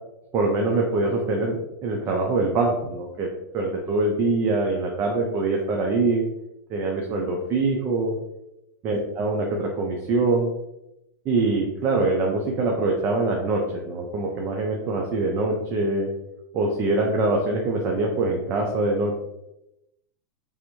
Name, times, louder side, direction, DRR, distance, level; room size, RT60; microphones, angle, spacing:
voice 1, 0.3-3.3 3.5-6.2 6.7-8.2 8.8-10.5 11.3-16.1 16.5-19.2, right 3 dB, 25° right, 0 dB, 0.4 m, -24 dB
3.4 x 2.5 x 3.0 m, 0.88 s
supercardioid pair, 155°, 10 cm